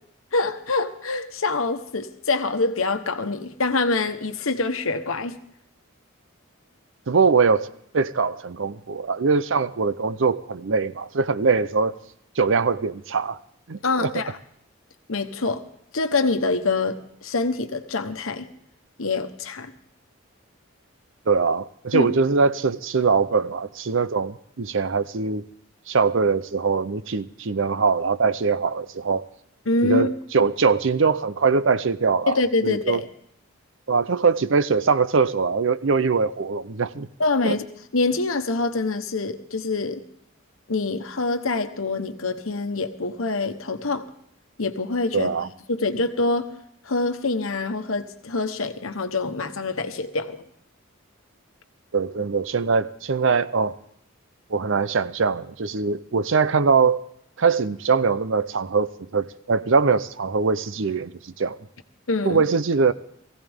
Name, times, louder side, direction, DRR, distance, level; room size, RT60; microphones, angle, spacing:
voice 1, 0.3-5.4 13.8-14.4 15.1-15.6 15.9-18.5 19.0-19.7 21.9-22.1 29.7-30.1 32.3-33.0 37.2-37.6 37.9-40.0 40.7-44.1 44.6-45.3 45.7-46.5 46.8-50.4 62.1-62.4, left 3 dB, 70° left, 1.2 m, -25 dB
voice 2, 7.1-7.7 7.9-11.9 12.4-13.4 13.7-14.1 21.3-25.4 25.9-29.3 29.8-32.4 32.6-33.0 33.9-37.1 37.4-37.6 45.1-45.5 51.9-53.8 54.5-57.0 57.4-61.6 62.2-62.9, right 4 dB, 60° right, 0.6 m, -22 dB
19.5 x 16.0 x 3.6 m
head